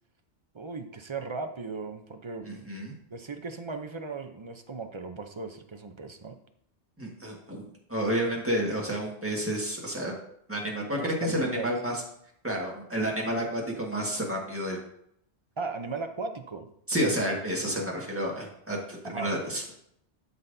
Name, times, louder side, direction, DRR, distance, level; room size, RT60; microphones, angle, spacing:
voice 1, 0.5-2.8 3.1-6.4 11.0-11.7 15.6-16.7 19.0-19.6, right 4 dB, 35° right, 6 dB, 0.6 m, -37 dB
voice 2, 2.4-2.9 7.0-7.6 7.9-10.1 10.5-12.0 12.4-14.8 16.9-19.6, equal, 10° right, -2 dB, 1.6 m, -30 dB
12.5 x 5.6 x 2.7 m, 0.71 s
omnidirectional pair, 1.2 m